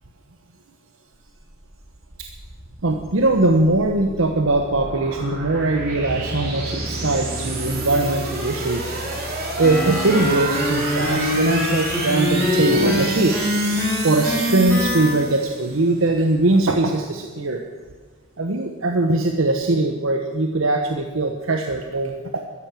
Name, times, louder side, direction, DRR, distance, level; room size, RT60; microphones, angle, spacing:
sound 1, 1.3-15.9, right 3 dB, 50° right, 3.1 m, -31 dB
voice 1, 2.8-9.0 9.6-13.4 14.0-17.6 18.4-22.4, right 2 dB, 75° right, 4 dB, 1.1 m, -21 dB
sound 2, 6.1-15.6, equal, 30° left, 3.3 m, -37 dB
sound 3, 9.6-15.1, left 1 dB, 10° left, 4.2 m, -23 dB
13.5 x 10.5 x 7.4 m, 1.4 s
head